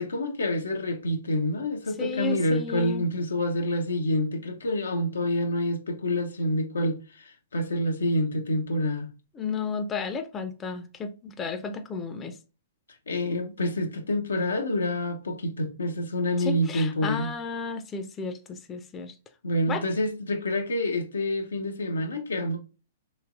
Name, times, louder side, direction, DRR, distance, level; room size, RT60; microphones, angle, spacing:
voice 1, 0.0-9.1 13.1-17.3 19.4-22.6, left 1 dB, 85° left, 0.7 m, -27 dB
voice 2, 2.0-3.1 9.4-12.4 16.4-19.1 19.7-19.8, left 4 dB, 20° left, 0.5 m, -33 dB
3.2 x 3.0 x 2.4 m
hypercardioid pair, 125°, 0 cm